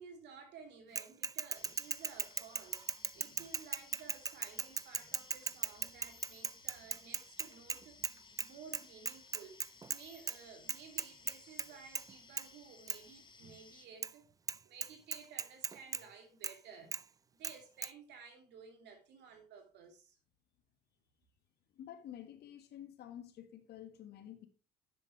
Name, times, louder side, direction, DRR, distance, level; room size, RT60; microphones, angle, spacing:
voice 1, 0.0-2.9 3.1-9.6 9.9-16.9 17.4-20.2, right 6 dB, 60° right, 2.9 m, -55 dB
Bicycle / Mechanisms, 1.0-8.1 8.4-8.5 8.7-10.0 10.3-10.4 10.7-11.7 11.9-12.1 12.4-12.5 12.9-13.0 14.0-14.1 14.5-14.6 14.8-16.0 16.4-16.5 16.9-17.0 17.4-17.5 17.8-17.9, right 5 dB, 15° right, 0.4 m, -37 dB
sound 1, 1.5-13.9, left 4 dB, 25° left, 1.1 m, -59 dB
voice 2, 21.7-24.5, left 10 dB, 50° left, 1.6 m, -50 dB
10.0 x 7.5 x 3.2 m
hypercardioid pair, 60°, 21 cm